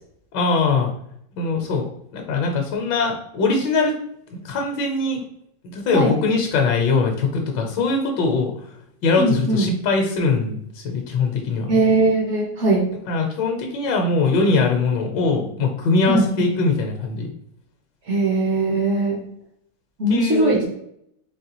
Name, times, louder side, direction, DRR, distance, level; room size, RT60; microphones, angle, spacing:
voice 1, 0.3-0.9 1.4-1.9 2.1-3.9 4.3-5.2 5.6-8.5 9.0-11.7 13.1-17.3 20.1-20.6, left 4 dB, 70° left, 2 dB, 1.3 m, -21 dB
voice 2, 9.2-9.7 11.7-12.9 16.1-16.5 18.1-19.2 20.0-20.7, right 2 dB, 55° right, -2 dB, 0.8 m, -20 dB
4.1 x 3.2 x 2.9 m, 0.72 s
omnidirectional pair, 2.1 m